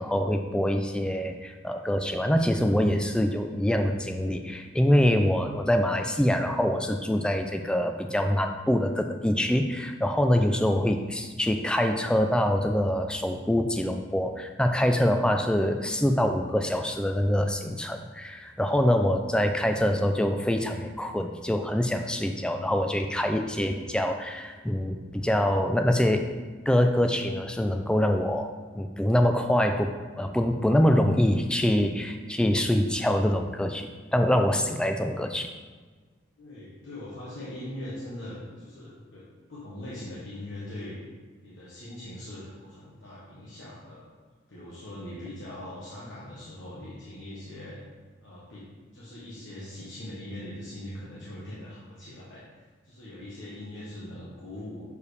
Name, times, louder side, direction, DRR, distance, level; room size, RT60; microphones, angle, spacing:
voice 1, 0.0-26.3 26.7-35.5, equal, 5° left, 5 dB, 0.3 m, -25 dB
voice 2, 36.4-41.0 41.4-44.0 44.5-47.8 48.2-54.8, left 1 dB, 70° left, -8 dB, 1.2 m, -41 dB
6.9 x 4.7 x 3.3 m, 1.4 s
head